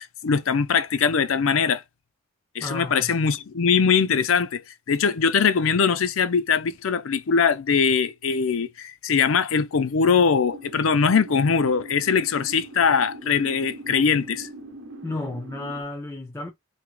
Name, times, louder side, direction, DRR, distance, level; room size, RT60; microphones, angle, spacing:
voice 1, 0.0-1.8 2.5-14.5, left 6 dB, 70° left, 0.5 m, -22 dB
voice 2, 2.6-3.1 15.0-16.5, left 2 dB, 15° left, 0.5 m, -32 dB
sound 1, 10.5-15.8, right 2 dB, 60° right, 0.8 m, -41 dB
3.6 x 2.8 x 3.1 m
head